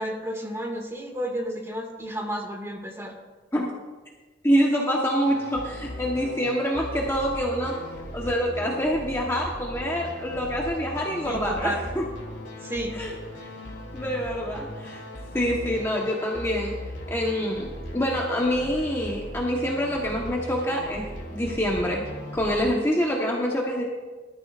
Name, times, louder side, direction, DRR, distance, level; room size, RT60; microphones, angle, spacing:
voice 1, 0.0-3.1 11.3-11.8 12.6-13.0, equal, 15° right, 0 dB, 2.1 m, -31 dB
voice 2, 4.4-7.8 8.1-12.0 12.9-13.5 13.9-15.0 15.3-16.8 17.1-22.0 22.3-23.8, equal, 15° left, -2 dB, 1.2 m, -26 dB
sound 1, 5.2-22.7, equal, 90° left, 2.9 m, -38 dB
19.0 x 13.0 x 2.6 m, 1.3 s
head